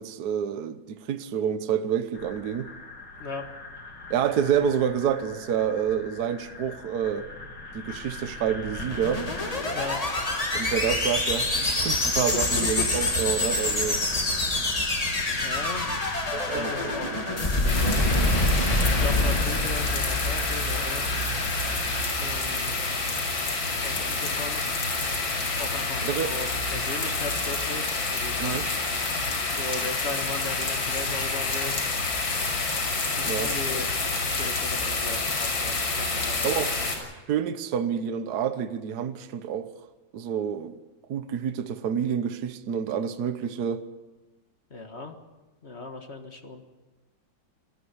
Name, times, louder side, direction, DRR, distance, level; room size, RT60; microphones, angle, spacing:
voice 1, 0.0-2.7 4.1-7.3 7.7-9.3 10.5-14.0 16.3-16.7 17.1-17.2 26.0-26.3 28.4-28.6 33.2-33.5 36.4-36.8 37.3-39.7 40.1-40.7 41.1-43.9, right 8 dB, 60° right, 1.4 m, -28 dB
sound 1, 2.1-22.1, left 2 dB, 60° left, 3.5 m, -39 dB
sound 2, 8.7-21.0, left 2 dB, 20° left, 1.6 m, -26 dB
voice 2, 12.3-13.0 15.4-16.0 16.3-18.0 19.0-21.4 22.2-22.8 23.8-24.7 25.6-28.7 29.6-31.8 33.1-36.5 37.0-37.1 44.7-45.2 45.6-46.6, left 3 dB, 35° left, 1.7 m, -37 dB
sound 3, 17.7-37.0, left 3 dB, 90° left, 6.6 m, -28 dB
20.5 x 14.0 x 9.6 m
omnidirectional pair, 2.1 m